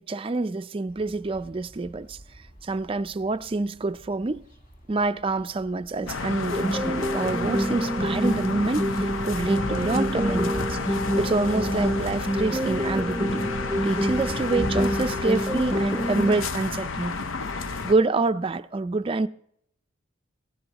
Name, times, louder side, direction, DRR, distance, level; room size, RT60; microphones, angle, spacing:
voice 1, 0.0-2.2 2.6-4.4 4.9-13.4 13.8-17.2 17.8-19.3, right 3 dB, 25° right, 0.4 m, -27 dB
sound 1, 0.9-17.8, equal, 40° left, 1.8 m, -41 dB
sound 2, 6.1-17.9, left 4 dB, 80° left, 0.7 m, -31 dB
sound 3, 6.5-16.5, right 1 dB, 5° right, 0.9 m, -27 dB
16.5 x 16.5 x 3.0 m
head